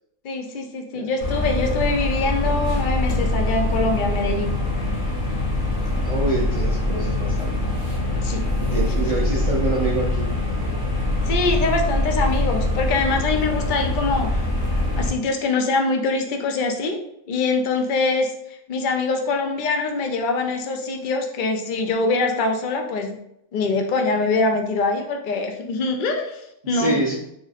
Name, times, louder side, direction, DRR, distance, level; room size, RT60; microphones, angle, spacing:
voice 1, 0.2-4.5 8.2-8.4 11.3-14.4 15.0-17.0 17.3-18.3 18.7-23.2 23.5-27.0, left 3 dB, 70° left, 4 dB, 0.4 m, -23 dB
sound 1, 1.2-15.1, left 2 dB, 40° left, 0.9 m, -23 dB
voice 2, 6.0-7.5 8.6-10.3 26.6-27.1, right 2 dB, 70° right, -4 dB, 0.3 m, -26 dB
3.1 x 2.4 x 4.0 m, 0.78 s
omnidirectional pair, 1.4 m